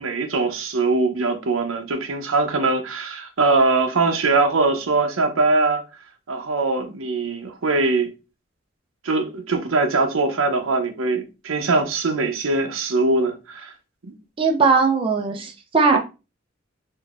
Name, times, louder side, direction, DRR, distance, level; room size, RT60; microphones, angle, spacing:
voice 1, 0.0-5.8 6.3-8.1 9.0-13.7 14.0-14.1, right 3 dB, 85° right, 0.6 m, -22 dB
voice 2, 14.4-16.0, right 4 dB, 25° right, 0.5 m, -19 dB
3.6 x 2.6 x 2.4 m
head